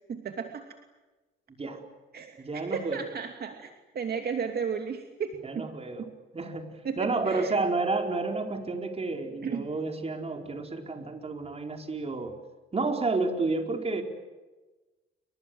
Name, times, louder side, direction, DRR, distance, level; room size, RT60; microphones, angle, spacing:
voice 1, 0.1-0.7 2.1-5.7 6.8-7.6 9.4-9.7, right 6 dB, 50° right, 4 dB, 2.7 m, -34 dB
voice 2, 2.4-3.0 5.4-12.3 12.7-14.0, right 3 dB, 30° right, 4 dB, 4.7 m, -31 dB
29.5 x 24.5 x 7.9 m, 1.2 s
cardioid pair, 90°, 20 cm